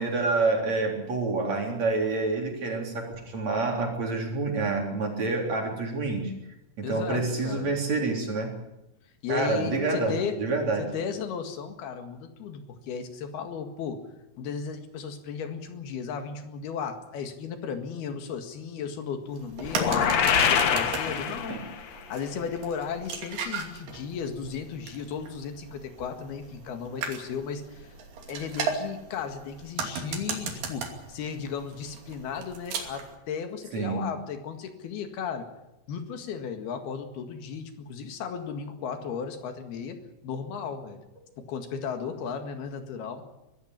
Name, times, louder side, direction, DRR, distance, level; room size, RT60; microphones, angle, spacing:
voice 1, 0.0-6.3 6.8-8.5 9.3-10.9 21.5-21.6 33.7-34.1, right 3 dB, 45° right, 1 dB, 4.7 m, -28 dB
voice 2, 6.8-7.7 9.2-10.4 10.8-14.0 14.4-21.6 22.1-27.9 28.3-35.5 35.9-40.0 40.2-41.0 41.4-43.2, left 6 dB, 80° left, 7 dB, 3.8 m, -35 dB
sound 1, 19.3-33.2, right 5 dB, 80° right, 4.7 m, -37 dB
sound 2, 19.7-21.9, left 7 dB, 60° left, 2.0 m, -24 dB
23.0 x 14.0 x 9.8 m, 0.93 s
omnidirectional pair, 4.5 m